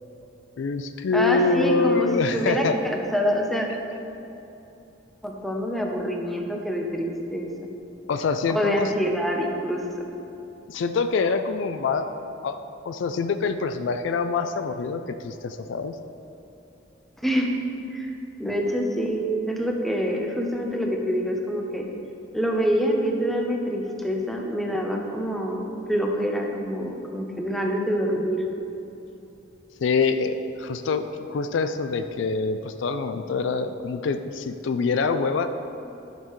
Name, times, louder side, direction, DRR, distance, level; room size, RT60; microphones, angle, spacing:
voice 1, 0.6-2.8 8.1-8.9 10.7-12.1 12.4-16.0 29.8-35.5, left 4 dB, 65° left, 9 dB, 0.4 m, -25 dB
voice 2, 1.1-3.7 5.2-7.5 8.5-9.8 17.2-17.5 17.9-18.1 18.4-21.9 22.3-28.4, equal, ahead, 0 dB, 0.7 m, -26 dB
12.0 x 6.7 x 3.1 m, 2.9 s
head